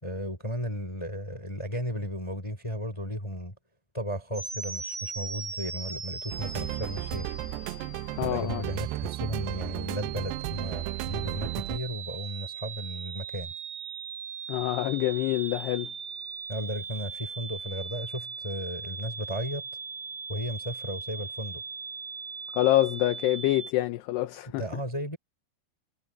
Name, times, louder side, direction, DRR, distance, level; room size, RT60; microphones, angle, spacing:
voice 1, 0.0-3.5 3.9-7.3 8.2-13.5 16.5-19.7 20.3-21.6 24.5-25.2, equal, 5° left, 4.5 m, -34 dB
sound 1, 4.3-23.7, right 5 dB, 50° right, 9.9 m, -40 dB
sound 2, 6.3-11.8, right 16 dB, 85° right, 2.5 m, -34 dB
voice 2, 8.2-8.6 14.5-15.9 22.5-24.6, left 16 dB, 75° left, 2.6 m, -26 dB
omnidirectional pair, 5.6 m